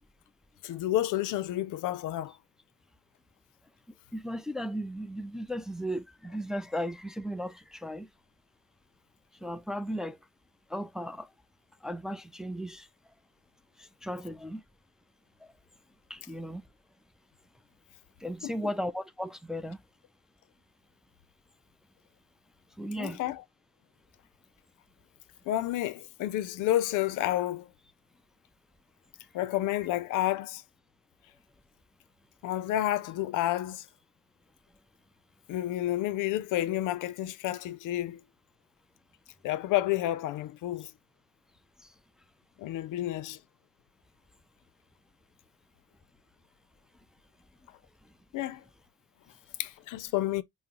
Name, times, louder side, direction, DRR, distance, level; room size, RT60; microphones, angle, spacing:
voice 1, 0.6-2.3 18.4-18.5 23.0-23.4 25.5-27.7 29.3-30.6 32.4-33.9 35.5-38.2 39.4-40.9 42.6-43.4 48.3-48.6 49.6-50.4, left 13 dB, 85° left, 0.5 m, -30 dB
voice 2, 4.1-8.1 9.4-10.2 10.7-11.3 11.8-12.9 14.0-14.6 16.1-16.6 18.2-19.8 22.8-23.2, equal, ahead, 0.4 m, -35 dB
5.1 x 2.1 x 2.9 m
cardioid pair, 90°, 30 cm